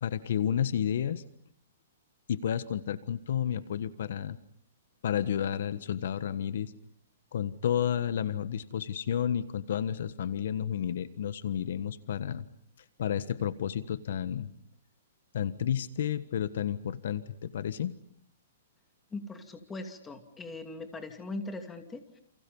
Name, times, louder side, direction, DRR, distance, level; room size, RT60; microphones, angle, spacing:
voice 1, 0.0-1.2 2.3-4.4 5.0-6.7 7.3-12.4 13.0-14.5 15.3-17.9, left 9 dB, 65° left, 14 dB, 1.4 m, -31 dB
voice 2, 19.1-22.2, left 2 dB, 10° left, 7 dB, 2.6 m, -40 dB
29.5 x 29.5 x 5.5 m, 0.63 s
hypercardioid pair, 160°, 0 cm